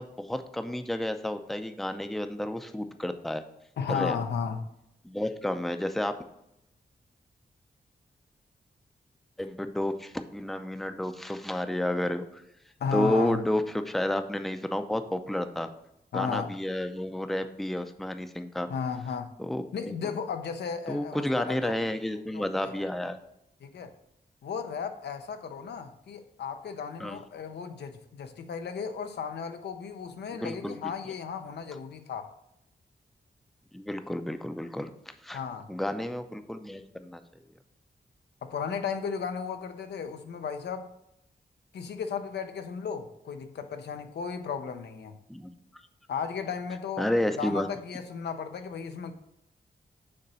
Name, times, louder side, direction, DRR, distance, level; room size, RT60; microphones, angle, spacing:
voice 1, 0.0-3.4 3.9-4.2 5.0-6.1 9.4-12.4 12.9-15.7 16.1-18.7 19.4-19.9 20.9-23.2 27.0-27.2 30.3-30.9 33.7-35.4 35.7-37.2 45.3-45.5 47.0-47.7, left 1 dB, ahead, 0.5 m, -31 dB
voice 2, 3.8-4.6 12.8-13.4 16.1-16.5 18.7-19.3 19.7-21.7 22.3-22.9 23.6-23.9 24.4-32.3 35.3-35.7 38.4-40.9 41.7-45.1 46.1-47.1 47.4-49.1, left 6 dB, 85° left, 0.6 m, -34 dB
6.7 x 3.0 x 5.4 m
cardioid pair, 75°, 17 cm